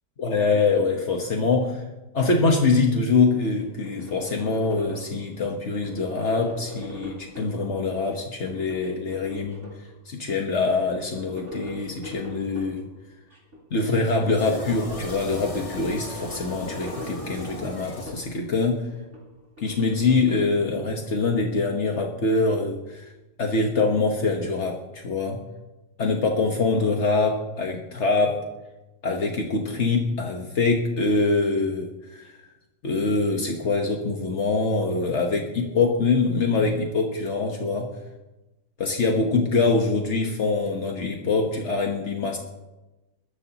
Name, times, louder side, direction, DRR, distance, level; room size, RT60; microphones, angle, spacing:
voice 1, 0.2-1.8 2.1-9.7 10.1-12.9 13.7-18.8 19.6-23.1 23.4-25.4 26.0-28.4 29.0-32.3 32.8-37.9 38.8-42.4, left 3 dB, 70° left, 1 dB, 1.6 m, -24 dB
sound 1, 3.4-5.2 5.7-7.6 8.0-9.9 10.3-10.4 10.6-12.8 13.3-13.6 13.9-15.5 16.0-18.4 18.8-21.1, equal, 75° right, 4.0 m, -41 dB
sound 2, 14.4-18.6, left 1 dB, 30° left, 1.6 m, -37 dB
22.5 x 13.5 x 3.0 m, 1.0 s
omnidirectional pair, 1.2 m